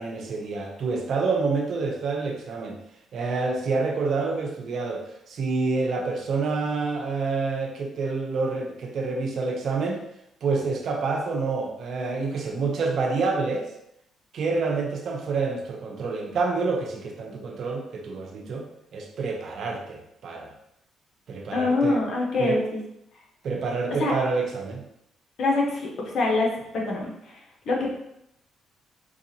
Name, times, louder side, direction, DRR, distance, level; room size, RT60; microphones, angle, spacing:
voice 1, 0.0-2.8 3.1-10.0 10.4-13.7 14.3-20.5 21.3-22.0 22.4-22.6 23.4-24.8, right 4 dB, 65° right, 1 dB, 0.7 m, -28 dB
voice 2, 21.5-22.6 24.0-24.1 25.4-25.8 26.1-26.5 26.7-27.1 27.7-27.9, left 3 dB, 65° left, -1 dB, 1.0 m, -23 dB
4.6 x 2.5 x 2.8 m, 0.79 s
cardioid pair, 85°, 0 cm